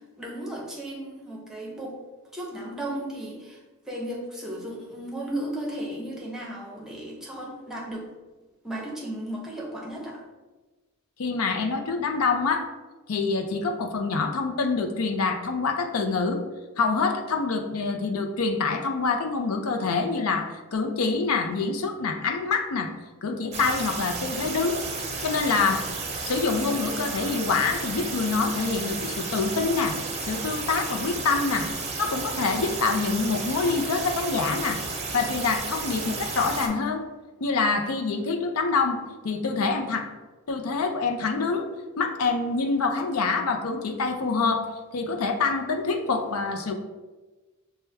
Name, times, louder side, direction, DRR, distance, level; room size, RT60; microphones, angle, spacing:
voice 1, 0.2-2.0 2.3-3.6 3.9-8.1 8.6-10.2, right 1 dB, ahead, -3 dB, 0.8 m, -35 dB
voice 2, 11.2-12.7 13.1-16.4 16.8-22.9 23.2-24.8 25.2-25.8 26.2-31.7 32.0-34.8 35.1-37.0 37.4-39.0 39.2-40.1 40.5-41.7 42.0-44.7 44.9-46.7, left 4 dB, 80° left, 4 dB, 0.5 m, -26 dB
sound 1, 23.5-36.7, right 4 dB, 30° right, 0.6 m, -33 dB
6.0 x 2.2 x 3.3 m, 1.2 s
head